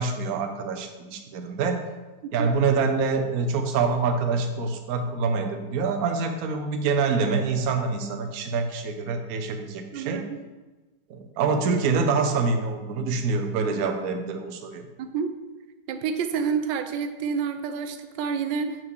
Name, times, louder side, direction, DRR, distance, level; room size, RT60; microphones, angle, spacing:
voice 1, 0.0-1.8 2.3-10.2 11.1-14.8, right 4 dB, 65° right, 6 dB, 1.1 m, -26 dB
voice 2, 9.9-10.4 11.7-11.8 15.0-15.3 15.9-18.8, right 6 dB, 90° right, 8 dB, 1.3 m, -29 dB
6.2 x 4.5 x 6.2 m, 1.2 s
omnidirectional pair, 1.9 m